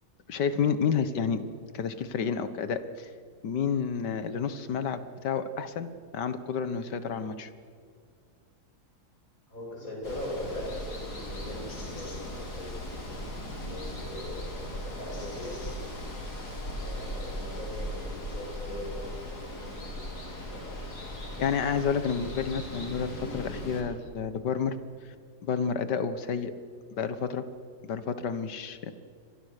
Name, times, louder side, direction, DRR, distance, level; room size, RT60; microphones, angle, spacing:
voice 1, 0.3-1.4 1.7-3.1 3.4-7.5 21.4-24.8 25.4-26.5 27.0-27.4 27.8-28.9, left 6 dB, 85° left, 12 dB, 1.9 m, -30 dB
voice 2, 9.5-12.7 13.6-15.7 16.8-20.8, left 1 dB, 55° left, -2 dB, 8.7 m, -40 dB
Water, 10.0-23.8, equal, 70° left, 4.8 m, -38 dB
29.5 x 24.5 x 6.6 m, 2.2 s
omnidirectional pair, 1.8 m